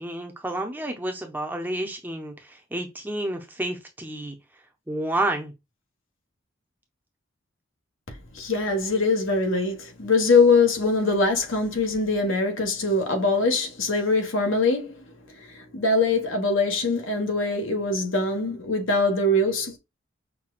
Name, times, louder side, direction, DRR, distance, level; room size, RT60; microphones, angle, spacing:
voice 1, 0.0-4.4 4.9-5.5, right 1 dB, 10° right, 0.6 m, -30 dB
voice 2, 8.3-15.0 15.4-19.8, left 3 dB, 70° left, 1.2 m, -23 dB
5.7 x 2.3 x 2.3 m
head